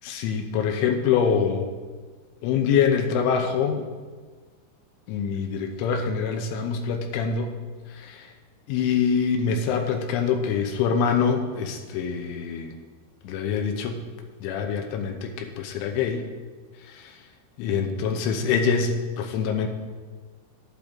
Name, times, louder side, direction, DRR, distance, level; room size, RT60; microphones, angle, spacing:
voice 1, 0.0-1.7 2.4-3.9 5.1-7.5 7.9-8.3 8.7-12.7 13.2-14.0 14.4-16.3 16.9-17.2 17.6-19.7, left 6 dB, 80° left, 4 dB, 3.2 m, -25 dB
12.0 x 10.5 x 3.7 m, 1.4 s
omnidirectional pair, 5.6 m